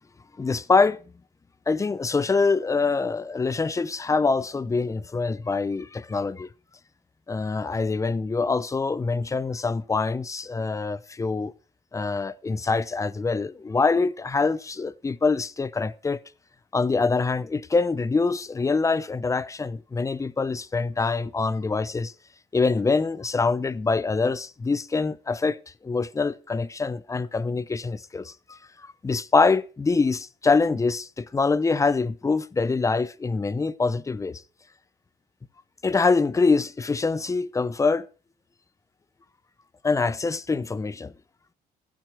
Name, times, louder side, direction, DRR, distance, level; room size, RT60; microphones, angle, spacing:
voice 1, 0.4-1.0 1.7-6.5 7.3-11.5 11.9-16.2 16.7-22.1 22.5-25.6 25.8-34.4 35.8-38.1 39.8-41.1, left 4 dB, 20° left, 0.7 m, -24 dB
15.5 x 9.3 x 4.6 m
cardioid pair, 110°, 17 cm